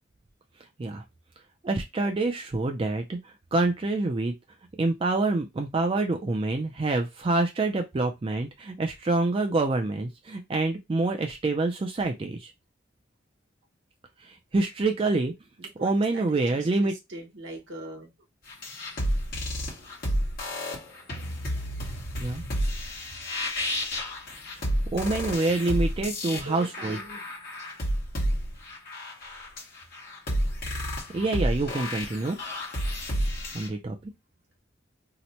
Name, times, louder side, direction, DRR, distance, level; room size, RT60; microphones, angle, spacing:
voice 1, 1.6-4.3 4.8-12.5 14.2-15.3 15.8-16.9 22.2-22.4 24.9-27.0 31.1-32.4 32.8-32.9 33.5-34.1, right 2 dB, 30° right, 0.3 m, -26 dB
voice 2, 15.6-18.1 26.3-27.2, right 1 dB, 70° right, 1.0 m, -42 dB
sound 1, 18.5-33.7, equal, 50° left, 1.1 m, -31 dB
2.9 x 2.1 x 4.0 m
head